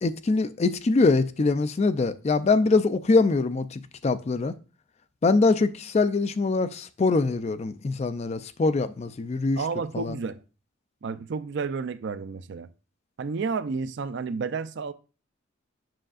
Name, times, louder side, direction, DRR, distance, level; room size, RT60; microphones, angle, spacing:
voice 1, 0.0-4.5 5.2-9.6 9.9-10.2, left 3 dB, 30° left, 0.3 m, -23 dB
voice 2, 9.6-10.4 11.0-12.7 13.2-14.9, right 5 dB, 60° right, 0.4 m, -31 dB
7.6 x 5.6 x 2.4 m
head